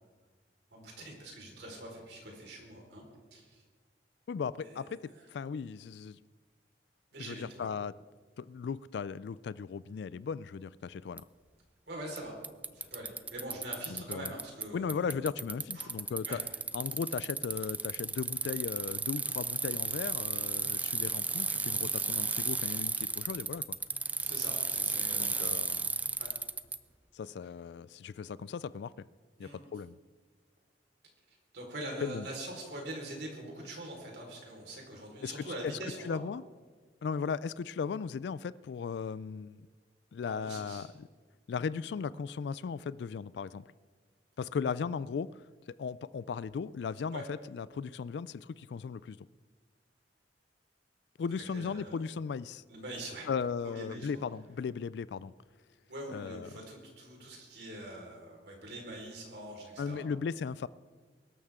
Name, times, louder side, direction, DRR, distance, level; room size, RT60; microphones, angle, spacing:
voice 1, 0.7-3.0 3.3-3.6 4.6-4.8 7.1-7.7 11.9-12.3 12.7-15.3 15.7-15.9 16.2-16.4 24.1-25.6 26.2-26.3 29.4-29.6 31.3-36.2 40.2-40.9 47.1-47.2 51.5-52.0 52.7-53.3 53.6-54.1 55.9-60.0, right 1 dB, 65° right, 4.5 m, -44 dB
voice 2, 4.3-5.0 5.3-6.2 7.2-7.9 8.4-11.2 13.9-14.3 14.7-16.4 16.7-23.8 25.2-25.9 27.1-28.9 29.4-30.0 32.0-32.3 35.2-35.7 36.0-36.4 37.0-39.7 40.1-41.1 41.5-43.6 44.4-45.4 45.8-49.2 51.2-52.6 53.3-55.3 56.1-56.5 59.8-60.7, left 6 dB, 70° left, 0.3 m, -37 dB
Bicycle, 11.2-11.3 12.2-12.3 12.4-14.6 14.9-26.8, right 4 dB, 10° right, 0.3 m, -34 dB
23.0 x 13.0 x 3.7 m
head